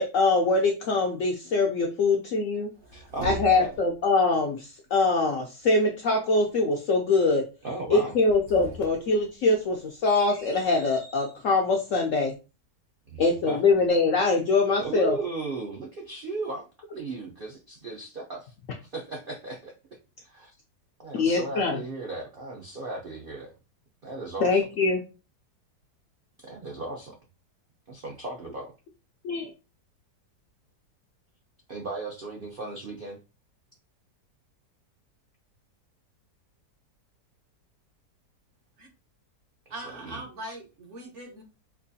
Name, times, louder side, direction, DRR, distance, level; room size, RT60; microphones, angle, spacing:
voice 1, 0.0-2.7 3.2-7.4 7.9-12.3 13.2-15.2 21.1-21.8 24.4-25.0 29.2-29.5, left 3 dB, 75° left, 2 dB, 0.7 m, -23 dB
sound 1, 2.5-4.0 8.1-11.4, right 2 dB, 90° right, 2.1 m, -42 dB
voice 2, 2.9-3.7 7.6-8.1 13.1-13.8 14.8-16.7 16.9-18.5 18.8-19.7 20.2-20.5 21.0-23.5 24.0-24.6 26.4-27.2 27.9-28.7 31.7-33.2 39.7-40.2, right 2 dB, 75° right, 0 dB, 0.5 m, -36 dB
voice 3, 39.7-41.4, right 1 dB, 55° right, 2 dB, 0.9 m, -40 dB
4.5 x 2.4 x 2.6 m, 0.31 s
omnidirectional pair, 1.8 m